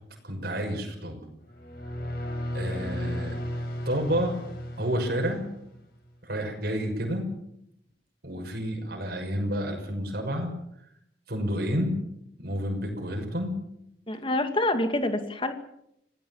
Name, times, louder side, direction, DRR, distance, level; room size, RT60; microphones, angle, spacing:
voice 1, 0.2-1.2 2.5-3.4 3.8-4.4 4.8-5.5 6.2-7.3 8.2-10.5 11.3-11.9 12.4-13.5, equal, 60° right, 2 dB, 6.3 m, -29 dB
sound 1, 1.5-5.8, equal, 55° left, 6.8 m, -34 dB
voice 2, 14.1-15.5, left 1 dB, 30° left, 7 dB, 2.4 m, -26 dB
26.5 x 17.5 x 7.4 m, 0.77 s
head